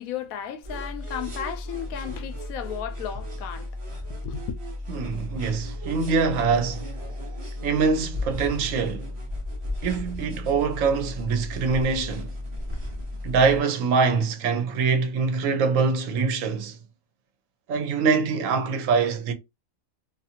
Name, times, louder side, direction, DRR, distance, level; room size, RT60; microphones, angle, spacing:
voice 1, 0.0-4.6, left 8 dB, 85° left, 1.0 m, -34 dB
sound 1, 0.6-13.6, left 1 dB, 30° right, 0.7 m, -34 dB
voice 2, 4.9-6.9 7.6-9.1 9.8-12.3 13.2-16.8 17.7-19.3, right 5 dB, 70° right, 1.0 m, -24 dB
2.6 x 2.5 x 2.7 m
omnidirectional pair, 1.4 m